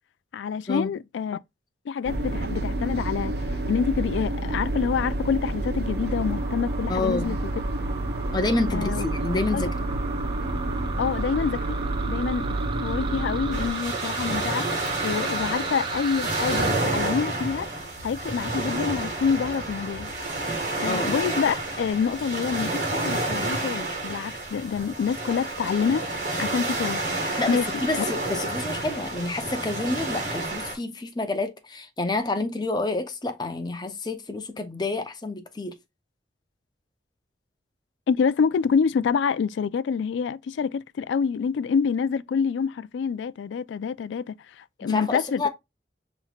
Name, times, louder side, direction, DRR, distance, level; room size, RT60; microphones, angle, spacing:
voice 1, 0.3-1.4 1.9-7.5 8.7-9.1 9.5-9.6 11.0-11.8 12.1-12.5 12.8-17.7 18.0-20.1 20.8-27.0 27.5-27.7 27.9-28.1 38.1-45.4, left 6 dB, 90° left, 0.3 m, -27 dB
sound 1, 2.1-13.7, right 2 dB, 60° right, 0.8 m, -29 dB
sound 2, 5.9-16.7, right 5 dB, 30° right, 0.6 m, -37 dB
voice 2, 6.9-7.3 8.3-9.9 20.8-21.2 27.4-35.7 44.8-45.5, left 2 dB, 25° left, 0.7 m, -28 dB
sound 3, 13.5-30.7, right 2 dB, 45° right, 1.7 m, -29 dB
5.6 x 3.0 x 2.3 m
head